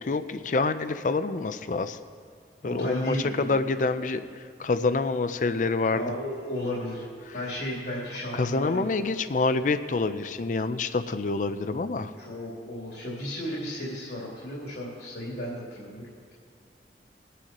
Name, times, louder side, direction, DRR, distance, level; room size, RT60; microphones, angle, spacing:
voice 1, 0.0-2.0 2.6-6.0 7.3-7.4 8.3-12.1, left 3 dB, 45° left, 11 dB, 0.4 m, -27 dB
voice 2, 2.6-3.5 5.9-7.1 7.3-8.8 12.2-16.3, equal, 80° left, -6 dB, 2.9 m, -34 dB
21.5 x 9.8 x 3.0 m, 2.3 s
head